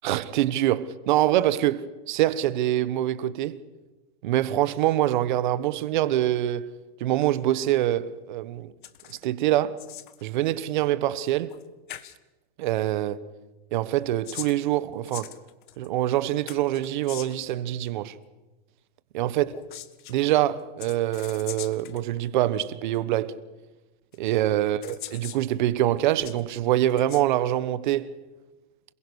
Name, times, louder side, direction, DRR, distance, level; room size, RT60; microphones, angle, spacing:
voice 1, 0.0-3.6 4.2-6.7 7.0-8.7 9.1-9.8 10.2-11.5 12.6-13.3 13.7-15.3 15.8-18.2 19.1-19.4 20.1-23.4 24.2-28.1, right 13 dB, 50° right, 1.3 m, -25 dB
sound 1, 8.8-9.3 9.5-10.2 11.5-11.6 11.9-12.2 13.9-15.9 16.5-17.5 19.4-20.2 20.8-22.0 22.9-23.0 24.1-24.2 24.8-25.4 25.9-26.4 26.9-27.2, left 13 dB, 55° left, 1.7 m, -41 dB
27.5 x 21.5 x 6.4 m
supercardioid pair, 170°, 30 cm